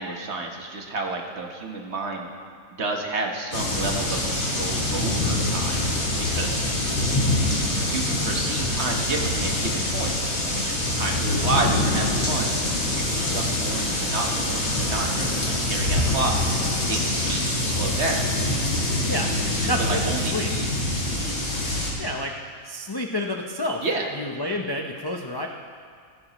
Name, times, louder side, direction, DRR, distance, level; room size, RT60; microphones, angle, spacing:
voice 1, 0.0-2.3 2.7-5.9 6.3-6.7 7.5-12.5 12.9-16.3 16.9-18.2 19.4-20.7 21.2-21.5 23.8-24.1, right 3 dB, 55° right, 1 dB, 1.4 m, -31 dB
sound 1, 3.5-21.9, left 1 dB, 75° left, 2.8 m, -25 dB
voice 2, 7.0-7.3 19.1-19.3 19.7-20.5 22.0-22.3 22.6-23.8 24.1-25.5, left 1 dB, 35° left, 1 dB, 0.3 m, -29 dB
15.5 x 15.0 x 3.0 m, 2.1 s
omnidirectional pair, 1.5 m